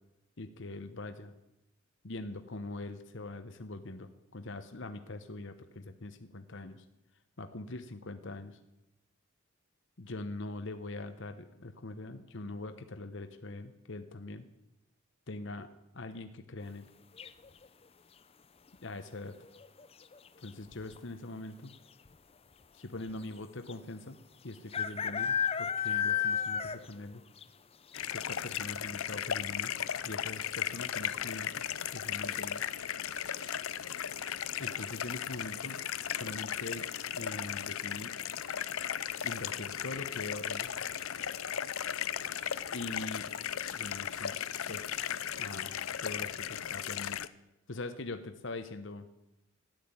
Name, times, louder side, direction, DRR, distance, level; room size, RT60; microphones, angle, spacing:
voice 1, 0.4-1.3 2.0-6.8 7.4-8.6 10.0-14.4 15.3-16.9 18.8-19.3 20.4-21.7 22.7-27.2 28.1-29.7 30.0-32.6 34.6-35.8 36.1-38.1 39.2-40.7 42.7-43.3 43.7-44.4 44.7-47.2 47.7-49.1, left 2 dB, 60° left, 9 dB, 1.0 m, -43 dB
sound 1, 17.2-17.7 19.5-19.9 20.1-20.2 20.4-21.0 21.7-21.8 22.1-22.2 23.7-23.8 24.7-27.0 27.4-27.5 28.0-28.1 28.5-28.6, left 7 dB, 30° left, 0.5 m, -32 dB
sound 2, 27.9-47.3, left 9 dB, 85° left, 0.6 m, -36 dB
sound 3, 28.8-46.5, right 5 dB, 90° right, 3.1 m, -59 dB
14.0 x 11.0 x 8.5 m, 0.92 s
head